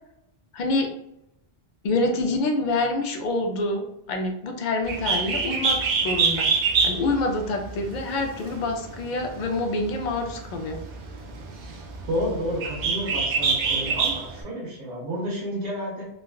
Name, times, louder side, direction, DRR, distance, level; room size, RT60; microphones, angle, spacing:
voice 1, 0.5-0.9 1.8-6.5 6.8-10.8, left 2 dB, 60° left, 3 dB, 0.5 m, -26 dB
Bird, 4.8-14.4, right 4 dB, 60° right, 0.5 m, -26 dB
voice 2, 12.1-16.1, equal, 80° right, -4 dB, 1.1 m, -30 dB
3.5 x 2.2 x 2.2 m, 0.81 s
omnidirectional pair, 1.2 m